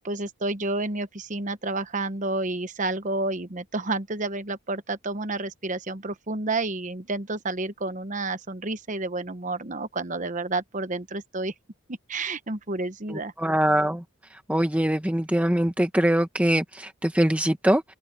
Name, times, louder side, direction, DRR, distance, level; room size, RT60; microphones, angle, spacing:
voice 1, 0.0-11.5 12.1-13.3, right 2 dB, 35° right, 1.0 m, -30 dB
voice 2, 13.1-14.0 14.5-17.8, right 1 dB, 5° right, 1.0 m, -23 dB
head